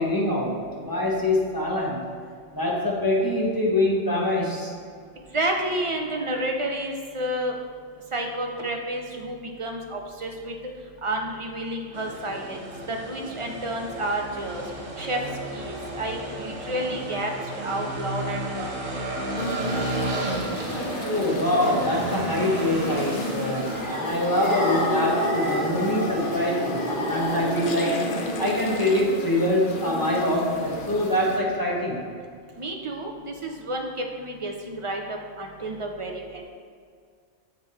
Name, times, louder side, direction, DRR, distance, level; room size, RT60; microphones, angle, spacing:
voice 1, 0.0-2.0 2.5-4.7 21.0-28.0 28.4-32.0, left 1 dB, 20° left, -4 dB, 1.0 m, -24 dB
voice 2, 5.3-7.5 8.1-10.5 11.0-12.6 12.9-14.6 15.0-15.2 15.5-17.3 17.6-19.0 32.6-36.4, right 1 dB, 45° right, 2 dB, 0.4 m, -30 dB
sound 1, 11.9-31.8, right 2 dB, 80° right, 1.3 m, -34 dB
sound 2, 19.4-31.4, left 2 dB, 55° left, 0.7 m, -34 dB
sound 3, 21.5-28.9 30.5-30.6 30.8-31.0, left 1 dB, 35° left, 1.2 m, -30 dB
7.3 x 3.7 x 4.2 m, 2.1 s
omnidirectional pair, 1.2 m